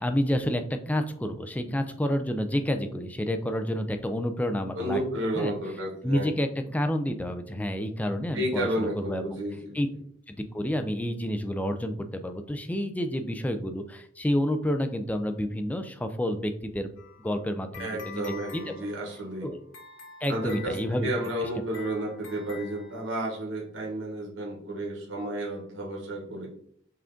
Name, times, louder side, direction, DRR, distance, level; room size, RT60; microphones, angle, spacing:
voice 1, 0.0-5.0 5.3-5.5 6.0-9.4 9.7-9.9 10.3-18.2 18.5-18.7 19.4-19.6 20.2-21.1 21.4-21.5, equal, 5° left, 7 dB, 0.3 m, -29 dB
voice 2, 4.8-6.3 8.3-9.7 17.8-19.5 20.3-26.5, right 1 dB, 65° right, -2 dB, 1.0 m, -32 dB
sound 1, 17.0-23.5, left 5 dB, 65° left, 0.8 m, -47 dB
5.7 x 2.5 x 3.7 m, 0.65 s
head